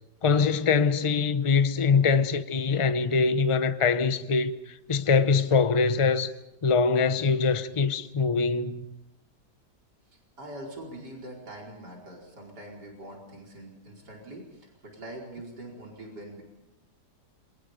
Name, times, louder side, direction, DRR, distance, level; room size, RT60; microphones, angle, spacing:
voice 1, 0.2-4.5 4.9-6.3 6.6-8.9, left 5 dB, 25° left, 0.7 m, -23 dB
voice 2, 10.4-16.4, right 1 dB, 70° right, 5.3 m, -43 dB
27.5 x 23.5 x 5.2 m
omnidirectional pair, 1.8 m